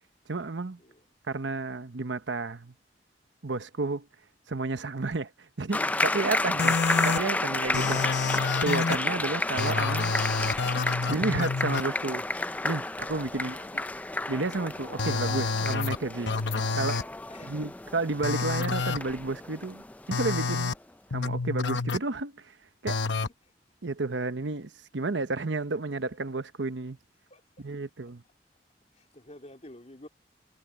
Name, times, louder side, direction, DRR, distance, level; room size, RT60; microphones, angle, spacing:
voice 1, 0.3-0.8 1.3-2.7 3.4-4.1 4.5-5.3 5.6-6.7 7.0-8.0 8.6-10.1 11.1-12.2 12.6-13.8 14.3-16.3 16.7-17.1 17.4-19.8 20.1-20.7 21.1-22.5 22.8-23.0 23.8-27.0 27.6-28.2, right 3 dB, 80° right, 1.0 m, -31 dB
sound 1, 5.7-20.7, left 2 dB, 10° left, 0.4 m, -31 dB
sound 2, 6.6-7.2 7.7-9.0 9.6-11.8 15.0-16.0 16.3-17.0 18.2-19.0 20.1-20.7 21.1-22.0 22.9-23.3, left 4 dB, 70° left, 0.9 m, -28 dB
voice 2, 13.3-13.9 14.8-15.1 17.3-17.7 23.4-23.5 27.3-27.4 28.9-30.1, left 1 dB, 35° left, 3.2 m, -49 dB
head